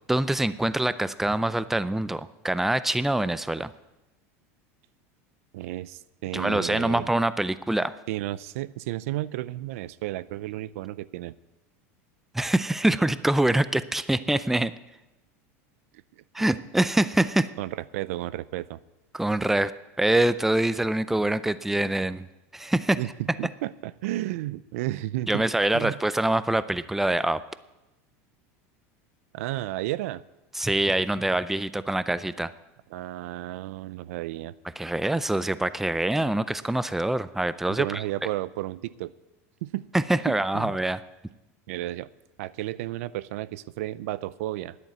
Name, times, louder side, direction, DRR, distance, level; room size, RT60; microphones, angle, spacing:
voice 1, 0.1-3.7 6.3-7.9 12.3-14.7 16.3-17.5 19.1-19.7 20.0-22.3 22.5-23.0 25.3-27.4 30.5-32.5 34.8-38.0 39.9-41.0, right 1 dB, 5° right, 15 dB, 0.5 m, -25 dB
voice 2, 5.5-7.1 8.1-11.3 16.2-16.5 17.6-18.8 23.0-23.1 23.4-25.5 25.7-26.0 29.3-30.2 32.9-34.5 37.7-39.1 39.6-39.8 40.3-40.8 41.7-42.1 42.4-44.8, right 16 dB, 75° right, 18 dB, 0.5 m, -33 dB
10.0 x 8.9 x 9.4 m, 1.0 s
supercardioid pair, 115°, 8 cm